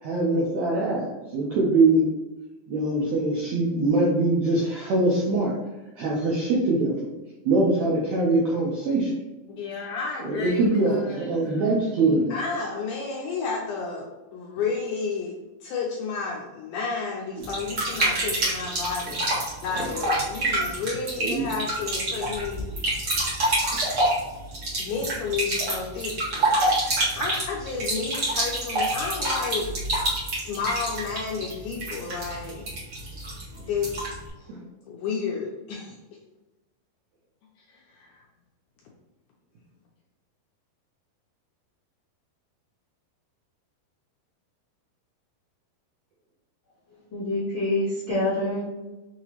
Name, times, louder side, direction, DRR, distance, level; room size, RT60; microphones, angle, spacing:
voice 1, 0.0-2.0 2.7-5.5 6.0-7.1 7.5-9.1 10.3-12.4 19.7-19.9 21.2-21.5 23.7-23.8 34.5-34.6, right 2 dB, 75° right, -4 dB, 1.6 m, -23 dB
voice 2, 9.5-11.3 12.3-15.3 15.6-19.2 19.6-22.7 24.8-26.6 27.1-29.7 30.3-32.6 33.6-33.9 34.4-34.5 34.9-36.0 37.7-38.2, left 5 dB, 80° left, -3 dB, 1.9 m, -31 dB
sound 1, 17.4-34.3, right 1 dB, 55° right, 1.2 m, -27 dB
voice 3, 47.1-48.7, left 1 dB, 60° left, -11 dB, 1.3 m, -26 dB
6.2 x 2.9 x 2.9 m, 1.1 s
omnidirectional pair, 4.2 m